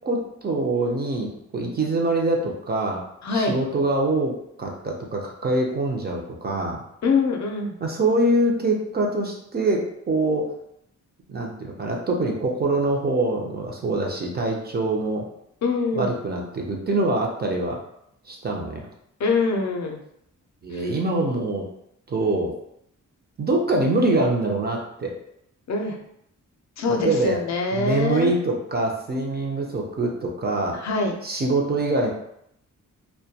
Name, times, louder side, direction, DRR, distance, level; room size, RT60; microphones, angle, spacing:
voice 1, 0.0-3.0 3.3-6.8 7.8-10.5 11.3-15.3 15.9-17.8 18.3-18.9 20.6-21.6 22.1-22.5 23.4-25.1 26.9-27.4 27.7-30.8 31.2-32.1, right 2 dB, 30° right, 0 dB, 0.4 m, -24 dB
voice 2, 3.2-3.6 7.0-7.7 15.6-16.1 19.2-20.0 20.7-20.8 25.7-26.0 26.8-28.3 30.8-31.2, left 4 dB, 60° left, 2 dB, 0.5 m, -24 dB
2.2 x 2.1 x 2.7 m, 0.74 s
wide cardioid pair, 115°, 32 cm